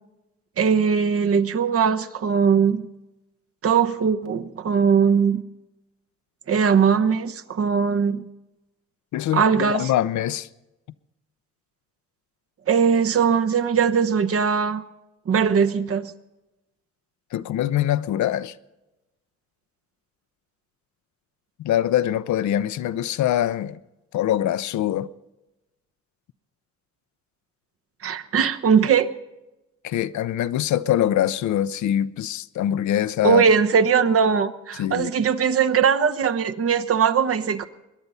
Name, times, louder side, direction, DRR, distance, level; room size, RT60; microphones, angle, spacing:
voice 1, 0.6-2.8 3.6-5.4 6.5-8.2 9.3-9.9 12.7-14.8 15.3-16.1 28.0-29.1 33.2-37.7, right 6 dB, 50° right, 1.0 m, -20 dB
voice 2, 9.1-10.5 17.3-18.5 21.6-23.8 24.1-25.1 29.8-33.4 34.8-35.1, left 11 dB, 70° left, 0.7 m, -23 dB
22.0 x 10.5 x 5.5 m
cardioid pair, 90°, 30 cm